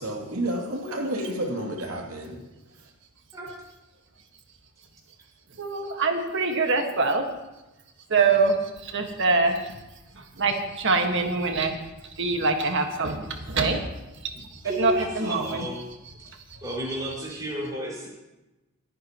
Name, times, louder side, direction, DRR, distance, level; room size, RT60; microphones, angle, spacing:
voice 1, 0.0-2.4 2.8-2.9, right 1 dB, 75° right, 0 dB, 2.8 m, -30 dB
voice 2, 5.6-7.3 8.1-8.6 8.8-9.7 10.4-11.7 12.2-13.8 14.8-15.6 16.2-16.3, right 3 dB, 55° right, 4 dB, 1.7 m, -24 dB
voice 3, 14.6-15.9 16.6-18.1, equal, 15° right, -4 dB, 5.4 m, -32 dB
27.0 x 9.9 x 3.0 m, 1.0 s
head